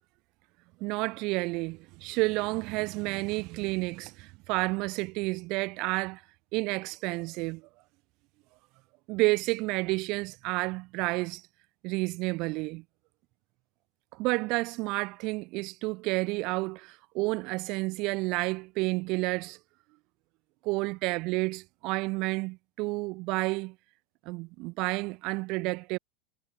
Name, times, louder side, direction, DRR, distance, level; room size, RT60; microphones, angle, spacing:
voice 1, 0.8-6.2 6.5-7.6 9.1-11.4 11.8-12.8 14.1-19.6 20.6-23.7 24.3-26.0, right 24 dB, 55° right, 5.6 m, -30 dB
supercardioid pair, 130°, 0 cm